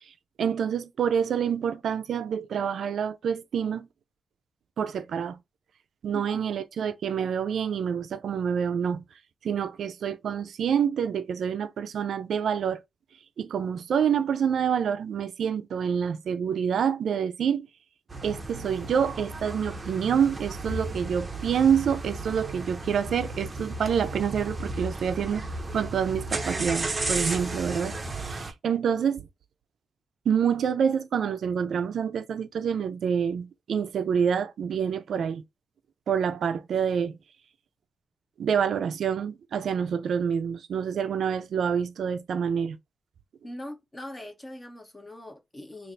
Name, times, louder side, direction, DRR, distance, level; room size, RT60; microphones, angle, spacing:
voice 1, 0.4-3.9 4.8-5.4 6.0-9.0 9.4-12.8 13.4-17.7 18.2-25.4 25.7-27.9 28.2-29.3 30.3-35.4 36.1-37.2 38.4-42.8, right 7 dB, 80° right, 0.4 m, -27 dB
sound 1, 18.1-28.5, right 2 dB, 20° right, 0.6 m, -34 dB
voice 2, 43.4-45.9, left 1 dB, 15° left, 0.8 m, -41 dB
3.2 x 2.5 x 3.9 m
wide cardioid pair, 165°, 0 cm